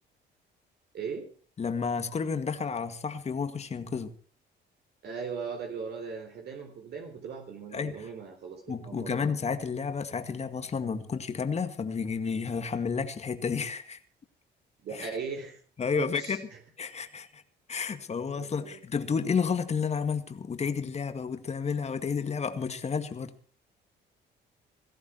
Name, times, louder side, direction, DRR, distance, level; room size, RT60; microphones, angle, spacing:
voice 1, 0.9-1.3 5.0-9.2 14.8-15.6 16.0-16.6 18.4-18.8, right 5 dB, 60° right, 3.8 m, -38 dB
voice 2, 1.6-4.1 7.7-8.1 8.7-14.0 14.9-15.1 15.8-16.4 16.8-17.4 17.7-23.3, left 5 dB, 35° left, 2.0 m, -31 dB
18.0 x 14.5 x 4.6 m
cardioid pair, 100°, 19 cm